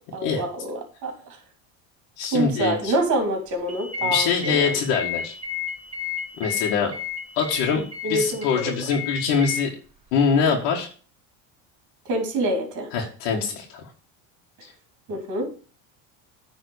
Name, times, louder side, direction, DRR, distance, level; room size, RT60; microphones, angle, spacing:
voice 1, 0.1-1.1 2.3-4.8 8.0-8.8 12.1-12.9 15.1-15.5, right 1 dB, 50° right, 4 dB, 3.2 m, -26 dB
voice 2, 2.2-2.9 4.0-5.3 6.4-6.9 7.4-7.8 8.1-9.7 10.1-10.9 12.9-13.8 14.6-14.7, left 5 dB, 75° left, -1 dB, 1.8 m, -23 dB
sound 1, 3.7-9.6, left 8 dB, 15° right, 2.6 m, -32 dB
9.6 x 4.1 x 6.4 m, 0.39 s
supercardioid pair, 125°, 38 cm